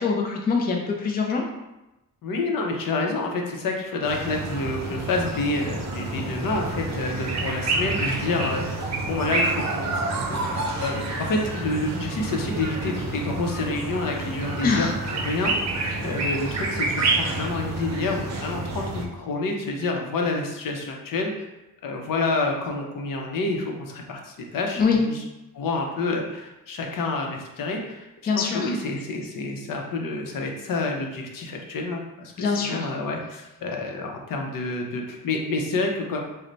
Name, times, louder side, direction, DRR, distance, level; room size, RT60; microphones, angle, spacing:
voice 1, 0.0-1.4 14.6-14.9 24.8-25.0 28.3-28.7 32.4-32.9, left 5 dB, 30° left, 1 dB, 0.4 m, -23 dB
voice 2, 2.2-9.9 10.2-21.3 21.8-25.2 25.5-28.1 28.4-36.2, left 3 dB, 70° left, 1 dB, 0.6 m, -28 dB
sound 1, 4.0-19.1, right 2 dB, 50° right, 0.6 m, -28 dB
3.2 x 2.1 x 3.9 m, 0.97 s
wide cardioid pair, 130°, 34 cm